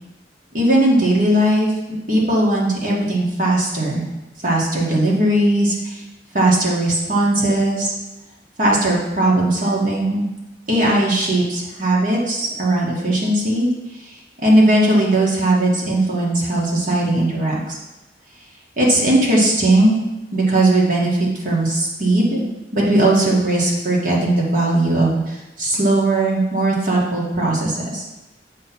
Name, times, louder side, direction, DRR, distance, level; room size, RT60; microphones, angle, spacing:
voice 1, 0.5-1.7 2.1-4.0 4.4-6.0 6.3-7.9 8.6-10.2 10.7-13.7 14.4-17.8 18.8-20.0 20.3-22.4 22.7-28.0, right 1 dB, 45° right, -4 dB, 1.7 m, -18 dB
7.5 x 3.3 x 5.9 m, 1.0 s
head